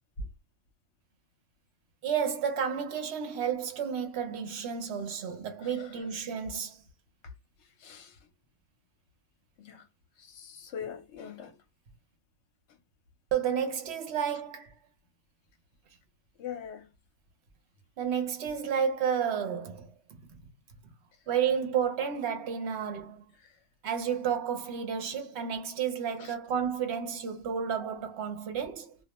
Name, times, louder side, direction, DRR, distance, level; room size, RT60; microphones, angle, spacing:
voice 1, 2.0-6.8 13.3-14.7 18.0-19.9 20.3-20.4 21.3-23.2 23.8-29.0, right 7 dB, 70° right, 0.8 m, -31 dB
voice 2, 7.8-8.1 9.6-9.8 10.2-11.5 16.4-16.8 26.2-26.3, left 8 dB, 70° left, 0.9 m, -42 dB
2.3 x 2.1 x 2.9 m
omnidirectional pair, 1.2 m